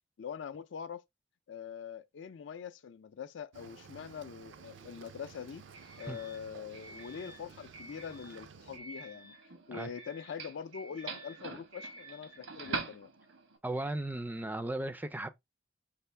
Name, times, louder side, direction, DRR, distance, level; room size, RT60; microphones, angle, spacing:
voice 1, 0.2-1.0 1.5-5.6 6.0-9.3 9.7-13.1, left 7 dB, 65° left, 0.4 m, -43 dB
Cricket / Waves surf, 3.5-8.8, right 5 dB, 70° right, 0.5 m, -54 dB
Doorbell, 4.5-13.6, right 3 dB, 85° right, 1.2 m, -45 dB
voice 2, 13.6-15.3, right 1 dB, 10° right, 0.4 m, -36 dB
5.5 x 2.5 x 3.2 m
head